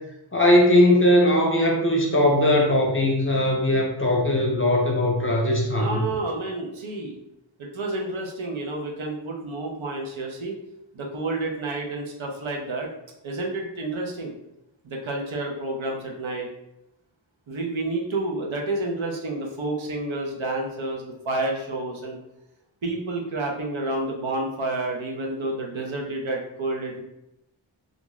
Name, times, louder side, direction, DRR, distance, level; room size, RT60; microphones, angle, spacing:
voice 1, 0.3-6.0, left 1 dB, 25° left, 0 dB, 0.8 m, -19 dB
voice 2, 5.8-7.2 7.6-10.6 10.9-12.9 13.2-14.3 14.8-16.5 17.5-22.2 22.8-27.0, right 2 dB, 80° right, 0 dB, 0.8 m, -29 dB
3.5 x 2.6 x 3.1 m, 0.85 s
wide cardioid pair, 55°, 47 cm